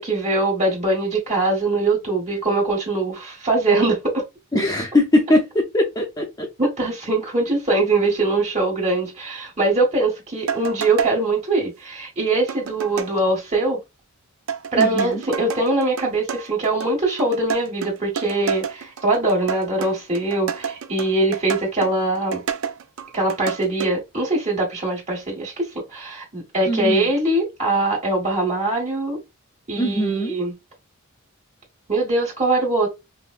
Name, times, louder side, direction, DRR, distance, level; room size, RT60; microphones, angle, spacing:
voice 1, 0.0-4.2 6.6-13.8 14.7-22.4 23.1-29.2 29.7-30.5 31.9-32.9, right 2 dB, 30° right, 1.7 m, -22 dB
voice 2, 4.5-6.5 14.8-15.2 26.7-27.1 29.8-30.4, left 1 dB, 15° left, 0.6 m, -21 dB
sound 1, 10.5-11.2 12.5-13.1 14.5-23.9, right 7 dB, 65° right, 0.4 m, -29 dB
5.3 x 2.1 x 2.4 m
head